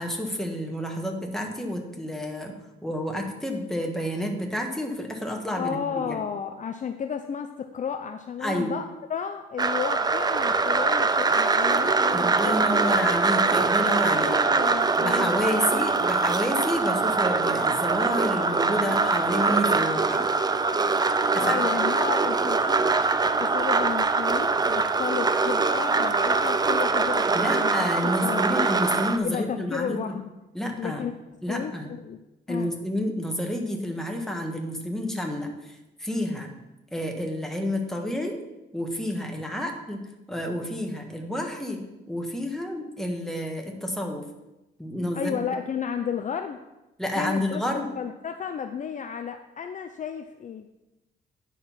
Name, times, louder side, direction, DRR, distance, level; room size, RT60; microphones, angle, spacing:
voice 1, 0.0-6.2 8.4-8.7 12.1-14.3 15.0-20.2 21.3-21.6 27.3-30.1 30.5-31.1 31.4-31.9 32.5-36.5 36.9-38.4 38.7-44.2 44.8-45.4 47.0-47.9, equal, ahead, 2 dB, 1.5 m, -30 dB
voice 2, 5.5-12.9 14.1-15.3 15.6-15.8 21.3-23.0 23.4-28.5 29.2-30.3 30.8-31.1 31.5-32.2 32.5-32.7 45.1-46.6 47.2-47.6 48.0-50.7, left 7 dB, 40° left, 7 dB, 0.5 m, -33 dB
sound 1, 9.6-29.2, right 4 dB, 20° right, 0.5 m, -23 dB
9.3 x 4.6 x 5.7 m, 1.0 s
cardioid pair, 90°, 20 cm